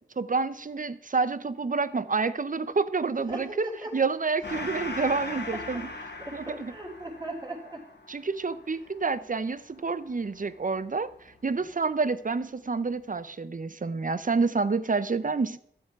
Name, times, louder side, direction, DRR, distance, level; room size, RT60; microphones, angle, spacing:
voice 1, 0.2-3.5 3.9-5.8 6.3-6.7 8.1-11.1 11.4-15.6, right 4 dB, 45° right, 15 dB, 0.6 m, -28 dB
voice 2, 3.1-3.9 5.9-7.8, right 1 dB, 20° right, -2 dB, 3.7 m, -39 dB
Gong, 4.4-11.4, left 3 dB, 65° left, 1.5 m, -40 dB
12.0 x 7.7 x 4.7 m, 0.67 s
wide cardioid pair, 50°, 19 cm